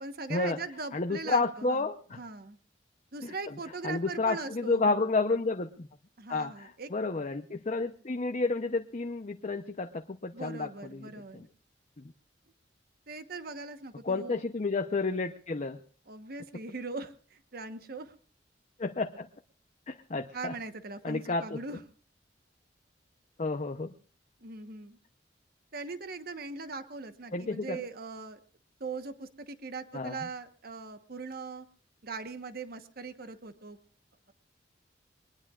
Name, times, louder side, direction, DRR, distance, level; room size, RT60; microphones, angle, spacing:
voice 1, 0.0-1.9 2.2-2.6 3.1-5.0 6.2-6.9 10.3-11.5 13.1-14.4 16.1-18.1 20.3-21.8 24.4-25.0 25.7-28.4 28.8-31.7 32.0-33.8, right 4 dB, 55° right, 9 dB, 1.2 m, -40 dB
voice 2, 0.9-2.2 3.8-5.9 6.3-11.5 12.0-12.1 14.0-15.8 18.8-19.3 19.9-20.5 21.0-21.6 23.4-23.9 27.3-27.8 29.9-30.2, left 3 dB, 40° left, 5 dB, 0.8 m, -31 dB
23.0 x 20.0 x 2.4 m, 0.43 s
head